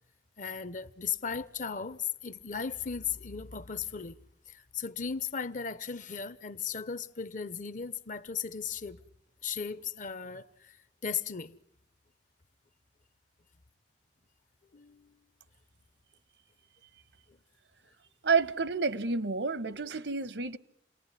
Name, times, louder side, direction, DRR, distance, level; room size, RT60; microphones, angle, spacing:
voice 1, 0.4-4.2 4.5-9.0 9.4-10.8 11.0-11.6 14.7-15.2, left 6 dB, 50° left, 1.0 m, -36 dB
voice 2, 18.2-20.6, right 4 dB, 80° right, 1.2 m, -29 dB
29.0 x 19.5 x 9.8 m
head